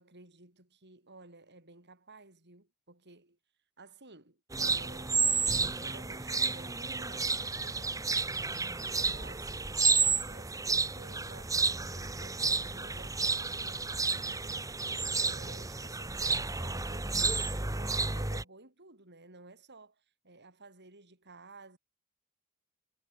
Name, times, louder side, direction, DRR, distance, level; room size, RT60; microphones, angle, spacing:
voice 1, 0.0-3.4 3.8-8.0 8.3-21.8, right 3 dB, 50° right, 7.9 m, -55 dB
sound 1, 4.5-18.4, right 4 dB, 15° right, 1.3 m, -31 dB
head